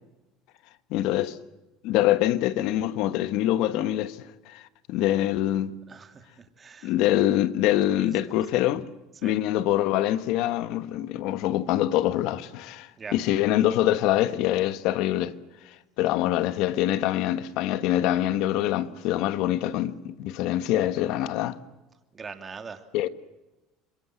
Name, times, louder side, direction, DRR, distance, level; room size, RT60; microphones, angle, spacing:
voice 1, 0.9-1.4 1.8-4.6 4.9-5.8 6.8-8.9 9.2-15.3 16.0-21.6 22.9-23.1, left 13 dB, 70° left, 1.3 m, -25 dB
voice 2, 5.9-6.2 6.6-6.9 9.2-9.4 13.0-13.1 22.1-22.8, right 5 dB, 25° right, 2.5 m, -40 dB
27.0 x 22.0 x 8.0 m
supercardioid pair, 120°, 0 cm